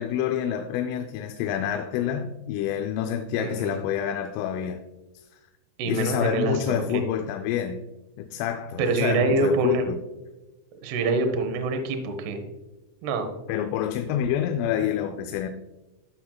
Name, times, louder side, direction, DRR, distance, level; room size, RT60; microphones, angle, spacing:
voice 1, 0.0-4.8 5.9-7.8 8.2-10.0 13.5-15.5, left 9 dB, 90° left, 3.1 m, -27 dB
voice 2, 3.4-3.8 5.8-7.0 8.8-9.9 10.8-12.4 13.0-13.3, right 3 dB, 70° right, 2.6 m, -25 dB
14.5 x 5.9 x 2.3 m
omnidirectional pair, 5.7 m